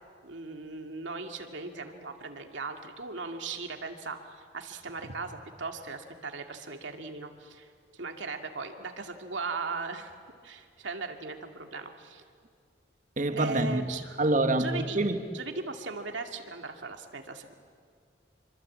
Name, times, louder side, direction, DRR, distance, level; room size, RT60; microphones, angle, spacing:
voice 1, 0.2-10.1 10.4-12.2 13.3-14.2 14.6-15.0 15.3-17.5, right 4 dB, 85° right, 2.4 m, -38 dB
voice 2, 13.2-13.9 14.2-15.2, right 2 dB, 40° right, 1.5 m, -26 dB
27.0 x 24.5 x 8.7 m
head